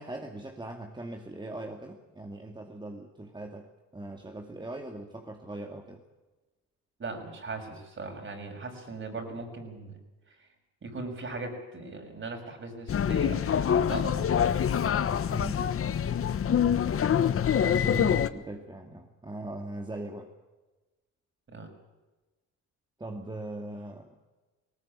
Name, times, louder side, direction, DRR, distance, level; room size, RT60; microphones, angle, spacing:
voice 1, 0.0-6.0 15.3-15.8 17.4-20.3 23.0-24.1, right 1 dB, 15° right, 2 dB, 2.4 m, -40 dB
voice 2, 7.0-10.0 10.8-13.5 13.9-14.4 17.6-17.7 21.5-21.7, right 3 dB, 40° right, 4 dB, 6.3 m, -39 dB
sound 1, 12.9-18.3, left 8 dB, 45° left, 1.1 m, -25 dB
19.5 x 18.5 x 8.7 m, 1.2 s
cardioid pair, 90°, 30 cm